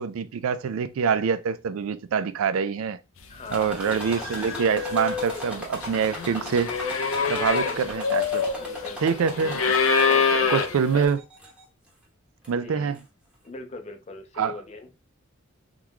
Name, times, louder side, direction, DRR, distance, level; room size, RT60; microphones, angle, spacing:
voice 1, 0.0-3.0 3.5-6.7 7.3-8.4 9.0-9.6 10.5-11.2 12.5-13.0 14.4-14.5, right 6 dB, 90° right, 0.4 m, -25 dB
voice 2, 3.3-4.3 7.6-7.8 8.6-9.6 10.0-10.5 10.9-11.1 12.6-13.0 13.4-15.0, left 3 dB, 35° left, 0.5 m, -41 dB
sound 1, 3.5-3.6 3.9-11.1, left 5 dB, 85° left, 0.5 m, -26 dB
sound 2, 3.5-10.5 11.0-11.6 12.4-12.5 12.9-13.0, equal, 5° right, 1.0 m, -39 dB
3.7 x 3.0 x 2.2 m
head